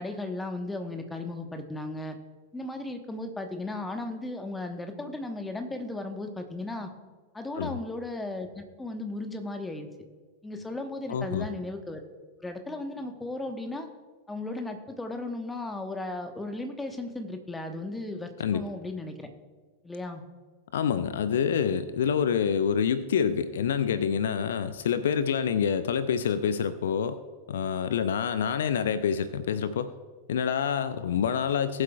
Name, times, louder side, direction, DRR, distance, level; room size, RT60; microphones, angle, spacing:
voice 1, 0.0-2.2 2.5-6.9 7.3-9.9 10.4-12.0 12.4-13.9 14.3-19.3 19.8-20.2, left 2 dB, 10° left, 6 dB, 1.2 m, -35 dB
voice 2, 11.1-11.5 18.4-18.7 20.7-27.2 27.5-29.9 30.3-31.8, left 7 dB, 60° left, 13 dB, 0.5 m, -27 dB
19.5 x 7.7 x 2.4 m, 1.5 s
figure-of-eight pair, 90°, 0 cm